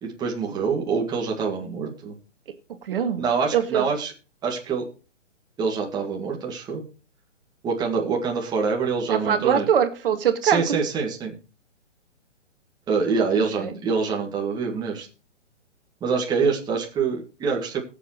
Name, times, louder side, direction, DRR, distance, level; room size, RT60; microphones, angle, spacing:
voice 1, 0.0-2.1 3.2-4.1 4.4-4.8 5.6-6.8 7.6-9.7 10.4-11.4 12.9-15.1 16.0-17.8, right 5 dB, 10° right, 1.9 m, -25 dB
voice 2, 2.8-3.2 3.5-3.8 9.1-10.8 13.4-13.7, right 8 dB, 50° right, 1.9 m, -23 dB
21.5 x 7.6 x 3.0 m
hypercardioid pair, 145°, 37 cm